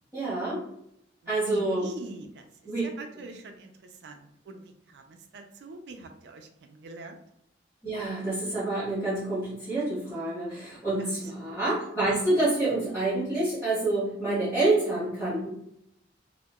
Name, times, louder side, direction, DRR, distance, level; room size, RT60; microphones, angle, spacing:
voice 1, 0.1-0.6 1.3-1.8 2.7-2.8 7.8-15.5, right 2 dB, 5° left, -12 dB, 1.1 m, -27 dB
voice 2, 1.2-2.5 2.8-7.2 11.0-11.5, right 2 dB, 65° right, 5 dB, 0.4 m, -44 dB
2.8 x 2.1 x 2.2 m, 0.74 s
head